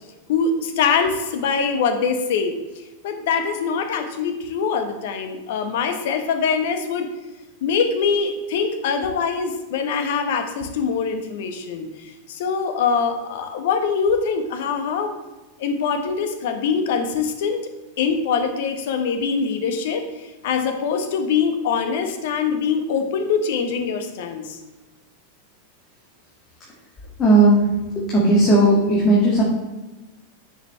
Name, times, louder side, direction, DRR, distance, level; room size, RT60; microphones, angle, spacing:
voice 1, 0.3-2.6 3.0-7.1 7.6-11.9 12.3-15.1 15.6-17.6 18.0-20.0 20.4-24.5, left 5 dB, 55° left, 7 dB, 1.2 m, -23 dB
voice 2, 27.2-27.6 28.1-29.4, right 1 dB, 25° left, -5 dB, 2.1 m, -15 dB
9.1 x 6.9 x 3.4 m, 1.1 s
figure-of-eight pair, 90°, 0 cm